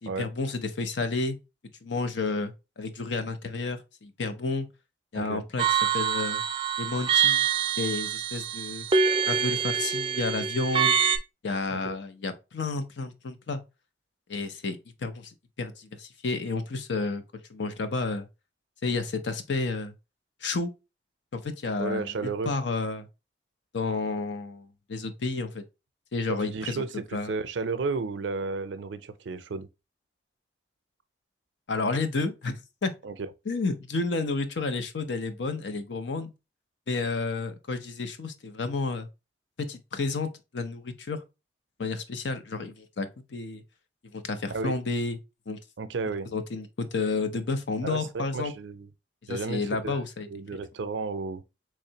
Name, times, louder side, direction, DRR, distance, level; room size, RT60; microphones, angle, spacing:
voice 1, 0.0-1.4 1.8-4.7 5.1-5.6 5.9-6.4 6.8-7.5 7.8-8.9 9.3-11.0 11.4-13.6 14.3-17.2 17.5-18.3 18.8-19.9 20.4-20.7 21.3-23.1 23.7-25.6 26.1-26.8 27.1-27.4 31.7-32.9 33.5-36.3 36.9-39.1 39.6-41.2 41.8-43.6 44.1-45.2 45.5-45.6 46.3-48.5 49.3-50.3, left 3 dB, 80° left, 0.6 m, -31 dB
sound 1, 5.6-11.2, right 7 dB, 30° right, 0.3 m, -25 dB
voice 2, 21.8-22.5 26.3-29.7 33.0-33.3 44.5-44.7 45.8-46.3 47.8-48.9 49.3-50.0 50.3-51.4, right 4 dB, 90° right, 0.5 m, -33 dB
3.6 x 3.2 x 2.8 m
head